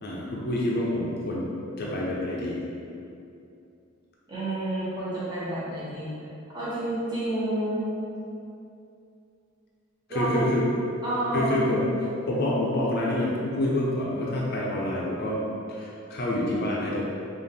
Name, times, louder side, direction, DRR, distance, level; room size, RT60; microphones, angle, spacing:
voice 1, 0.0-1.5 1.8-2.6 10.1-10.6 11.3-11.9 12.3-15.4 15.7-17.0, left 1 dB, 50° left, -4 dB, 0.6 m, -27 dB
voice 2, 4.3-6.1 6.5-7.9 10.1-10.5 11.0-11.6, right 1 dB, 20° right, -10 dB, 1.2 m, -29 dB
4.9 x 2.5 x 3.4 m, 2.6 s
head